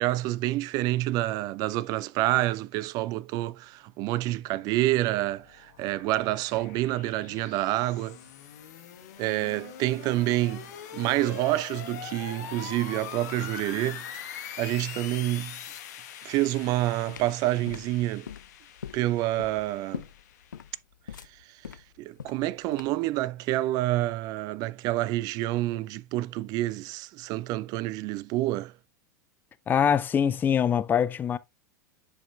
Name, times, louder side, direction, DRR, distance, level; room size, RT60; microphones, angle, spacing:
voice 1, 0.0-8.2 9.2-10.7 10.9-14.1 14.6-15.6 16.2-18.3 18.9-20.0 22.0-28.7, right 16 dB, 40° right, 0.4 m, -28 dB
sound 1, 4.8-20.8, left 9 dB, 60° left, 1.2 m, -43 dB
sound 2, 17.1-23.1, left 8 dB, 75° left, 0.4 m, -42 dB
voice 2, 29.7-31.4, left 8 dB, 20° left, 0.4 m, -23 dB
10.5 x 4.9 x 2.3 m
figure-of-eight pair, 90°, 10 cm